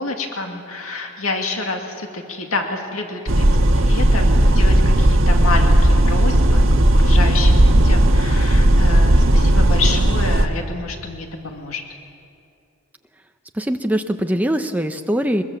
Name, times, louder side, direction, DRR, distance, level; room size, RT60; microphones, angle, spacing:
voice 1, 0.0-6.7 6.9-11.8, left 3 dB, 75° left, 3 dB, 2.2 m, -28 dB
sound 1, 3.3-10.5, right 1 dB, 65° right, 1.5 m, -14 dB
voice 2, 13.5-15.4, equal, 5° right, 6 dB, 0.8 m, -22 dB
23.0 x 21.5 x 7.2 m, 2.4 s
head